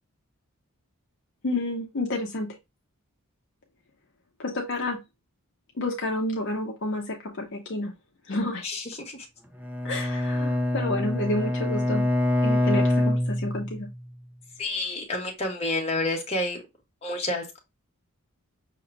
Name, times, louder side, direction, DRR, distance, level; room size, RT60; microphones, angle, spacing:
voice 1, 1.4-2.5 4.4-5.0 5.8-7.9 8.3-8.7 9.8-12.0 12.4-13.9, left 2 dB, 55° left, 1 dB, 0.6 m, -30 dB
voice 2, 8.6-9.3 14.6-16.6 17.0-17.6, left 2 dB, 30° left, 0 dB, 1.1 m, -29 dB
Bowed string instrument, 9.6-14.0, left 1 dB, 5° right, 0.3 m, -25 dB
5.8 x 2.8 x 2.5 m, 0.23 s
head